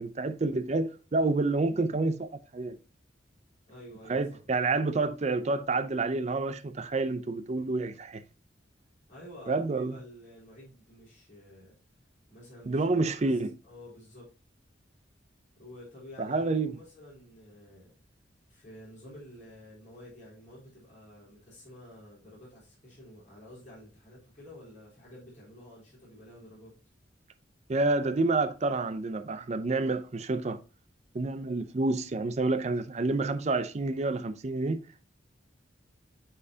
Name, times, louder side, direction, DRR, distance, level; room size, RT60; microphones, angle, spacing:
voice 1, 0.0-2.8 4.1-8.2 9.5-10.0 12.7-13.6 16.2-16.7 27.7-30.6 31.1-34.8, right 3 dB, 35° right, 0.5 m, -28 dB
voice 2, 3.7-4.4 9.1-11.8 12.3-14.3 15.6-18.0 18.5-26.7, left 1 dB, 40° left, 3.6 m, -50 dB
8.5 x 4.4 x 2.7 m
head